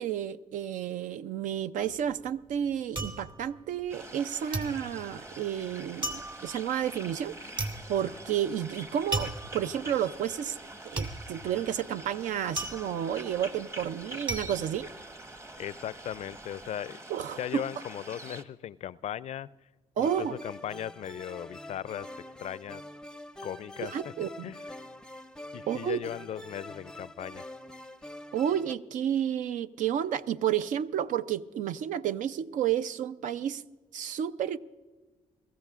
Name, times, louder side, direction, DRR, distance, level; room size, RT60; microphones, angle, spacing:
voice 1, 0.0-10.6 10.8-14.9 17.1-17.6 20.0-20.4 23.8-24.5 25.7-26.0 28.3-33.6 33.9-34.6, right 9 dB, 75° right, 0.5 m, -31 dB
sound 1, 1.8-4.2 4.5-15.6 16.0-16.6, right 2 dB, 35° right, 2.8 m, -37 dB
sound 2, 3.9-18.4, right 1 dB, 20° right, 1.1 m, -45 dB
voice 2, 15.6-17.0 17.4-19.5 20.0-22.1 22.4-22.8 23.4-24.7 25.5-27.5, left 10 dB, 55° left, 0.4 m, -38 dB
sound 3, 20.0-28.7, left 1 dB, 5° left, 0.6 m, -45 dB
22.0 x 14.5 x 2.4 m
supercardioid pair, 65°, 13 cm